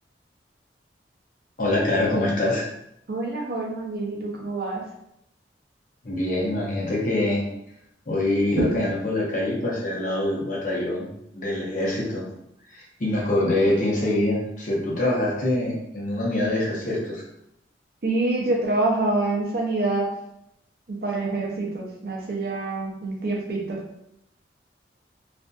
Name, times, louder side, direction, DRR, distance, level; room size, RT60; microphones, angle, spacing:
voice 1, 1.6-2.7 6.0-7.5 8.1-11.1 11.3-12.3 12.7-17.2, left 1 dB, 45° left, -4 dB, 0.7 m, -24 dB
voice 2, 3.1-4.8 18.0-20.1 20.9-23.8, right 2 dB, 55° right, -1 dB, 0.6 m, -26 dB
2.5 x 2.5 x 2.3 m, 0.78 s
head